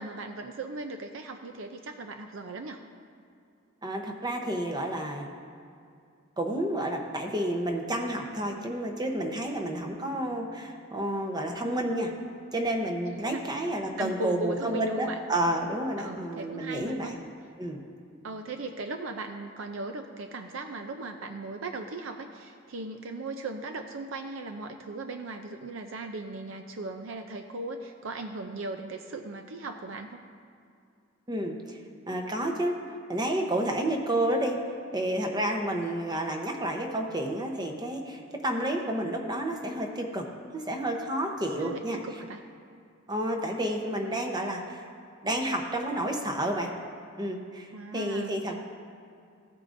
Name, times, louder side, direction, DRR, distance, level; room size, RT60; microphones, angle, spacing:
voice 1, 0.0-2.8 13.1-13.5 14.0-15.2 16.0-17.2 18.2-30.2 35.8-35.9 41.6-42.4 47.7-48.6, right 3 dB, 75° right, 6 dB, 0.5 m, -38 dB
voice 2, 3.8-5.3 6.4-12.1 12.5-17.2 17.6-17.8 31.3-31.8 32.1-32.8 33.1-34.6 34.9-40.3 40.5-42.0 43.1-44.8 45.2-46.7 47.2-48.6, right 1 dB, 20° right, 2 dB, 0.8 m, -30 dB
15.0 x 8.4 x 2.6 m, 2.4 s
head